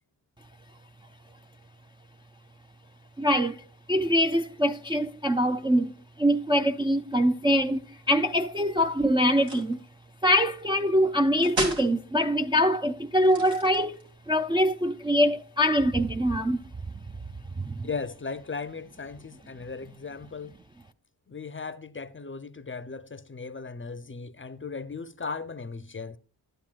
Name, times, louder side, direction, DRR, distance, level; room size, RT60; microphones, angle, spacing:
voice 1, 3.2-3.6 3.9-5.9 6.2-7.8 8.1-9.8 10.2-14.0 14.3-16.6 17.6-17.9, equal, 10° right, 0.3 m, -24 dB
sound 1, 9.3-9.8 11.4-11.9 13.2-14.1, right 2 dB, 85° right, 2.4 m, -33 dB
voice 2, 17.8-20.5 21.3-26.2, left 4 dB, 30° left, 0.6 m, -37 dB
11.5 x 8.9 x 2.4 m
cardioid pair, 50°, 44 cm